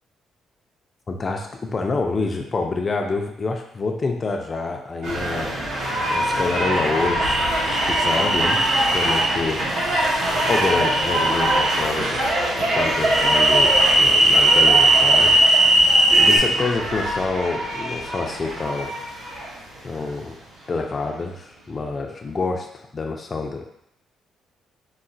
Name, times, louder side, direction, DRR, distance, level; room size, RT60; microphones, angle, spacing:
voice 1, 1.1-7.4 7.7-8.6 8.9-9.7 10.3-15.4 16.1-18.9 19.8-20.4 20.7-23.6, left 3 dB, 35° left, 3 dB, 0.4 m, -27 dB
sound 1, 5.0-20.1 20.7-20.8, right 1 dB, 85° right, 0.9 m, -24 dB
sound 2, 7.2-9.3 10.2-11.8 13.0-16.4, right 1 dB, 45° right, 0.6 m, -18 dB
3.9 x 2.1 x 2.6 m, 0.73 s
cardioid pair, 90°, 0 cm